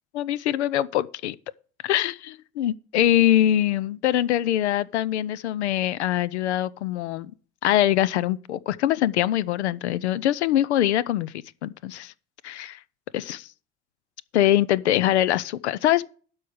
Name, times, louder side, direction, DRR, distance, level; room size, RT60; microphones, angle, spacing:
voice 1, 0.1-1.4 1.8-7.3 7.6-11.3 11.6-12.1 12.4-12.8 13.1-13.5 14.3-16.1, left 12 dB, 75° left, 0.5 m, -23 dB
12.0 x 4.8 x 7.2 m
figure-of-eight pair, 55°, 34 cm